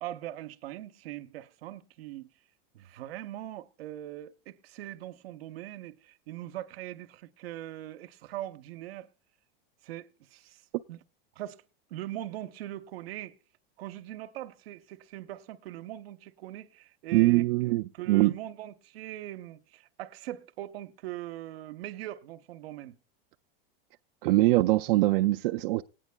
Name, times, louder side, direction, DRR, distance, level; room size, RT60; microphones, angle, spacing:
voice 1, 0.0-2.3 2.7-9.1 9.8-10.6 10.9-11.0 11.4-11.6 11.9-13.4 13.8-23.0, right 14 dB, 85° right, 0.8 m, -41 dB
voice 2, 17.1-18.3 24.2-25.8, right 18 dB, 65° right, 0.4 m, -23 dB
19.0 x 9.0 x 2.2 m
supercardioid pair, 155°, 29 cm